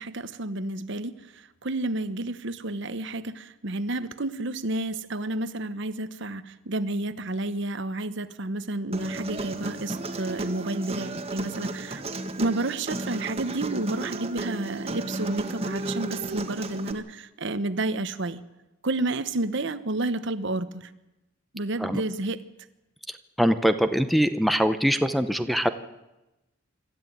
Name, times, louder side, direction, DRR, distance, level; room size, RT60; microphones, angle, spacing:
voice 1, 0.0-12.0 12.4-18.4 18.8-20.9 21.5-22.4, right 2 dB, 60° right, 13 dB, 1.1 m, -30 dB
Human voice, 8.9-16.9, right 2 dB, 30° right, 1.7 m, -33 dB
voice 2, 23.4-25.7, equal, ahead, 10 dB, 0.8 m, -23 dB
25.5 x 13.5 x 9.2 m, 1.0 s
head